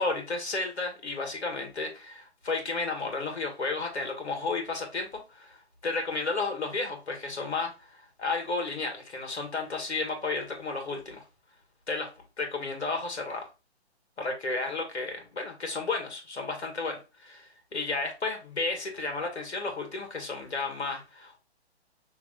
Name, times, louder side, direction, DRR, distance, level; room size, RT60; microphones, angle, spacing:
voice 1, 0.0-5.6 5.8-11.2 11.9-12.1 12.4-13.5 14.2-21.4, left 3 dB, 75° left, 1.9 m, -32 dB
6.0 x 3.2 x 2.3 m
figure-of-eight pair, 140°, 33 cm